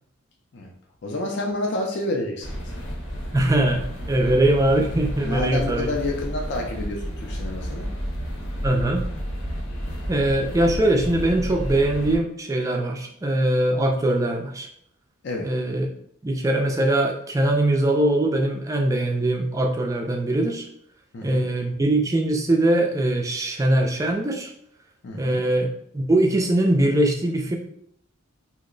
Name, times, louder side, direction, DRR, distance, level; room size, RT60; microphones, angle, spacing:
voice 1, 1.0-2.6 5.2-7.9 15.2-15.5 21.1-21.5 25.0-25.4, left 2 dB, 55° left, 0 dB, 0.4 m, -29 dB
sound 1, 2.4-12.2, equal, 75° left, 0.8 m, -31 dB
voice 2, 3.3-5.9 8.6-9.0 10.1-14.7 15.4-15.9 16.2-20.7 21.2-24.5 25.1-25.7 25.9-27.6, right 1 dB, 15° right, 2 dB, 0.3 m, -22 dB
2.8 x 2.0 x 3.7 m, 0.70 s
head